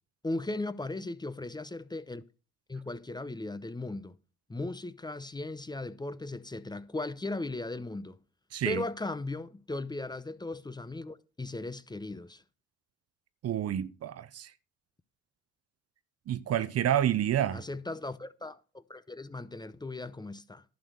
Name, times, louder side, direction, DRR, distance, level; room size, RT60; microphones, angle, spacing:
voice 1, 0.2-2.2 2.7-4.2 4.5-8.2 8.7-12.4 17.5-20.6, left 2 dB, 15° left, 0.8 m, -37 dB
voice 2, 8.5-8.8 13.4-14.5 16.3-17.6, right 11 dB, 55° right, 0.8 m, -29 dB
11.0 x 6.2 x 6.6 m
supercardioid pair, 65°, 30 cm